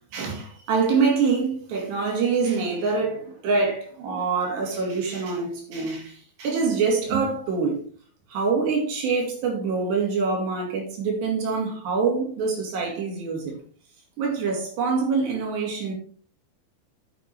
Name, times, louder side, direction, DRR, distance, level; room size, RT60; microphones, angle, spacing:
voice 1, 0.1-7.8 8.3-13.6 14.2-15.9, right 4 dB, 65° right, 4.5 m, -25 dB
9.8 x 6.8 x 4.5 m
omnidirectional pair, 5.4 m